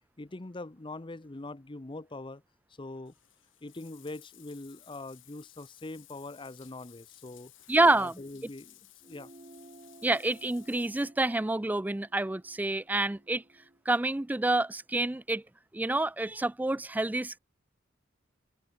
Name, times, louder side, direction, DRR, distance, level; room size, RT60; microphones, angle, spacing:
voice 1, 0.2-2.4 2.7-3.1 3.6-7.5 7.9-8.8 9.0-9.3, left 2 dB, 25° left, 0.8 m, -42 dB
Bathtub (filling or washing), 3.1-11.1, left 15 dB, 80° left, 5.7 m, -57 dB
voice 2, 7.7-8.1 10.0-13.4 13.9-15.4 15.7-17.4, right 2 dB, 10° right, 0.3 m, -28 dB
sound 1, 9.0-13.8, right 2 dB, 35° right, 1.6 m, -56 dB
open air
head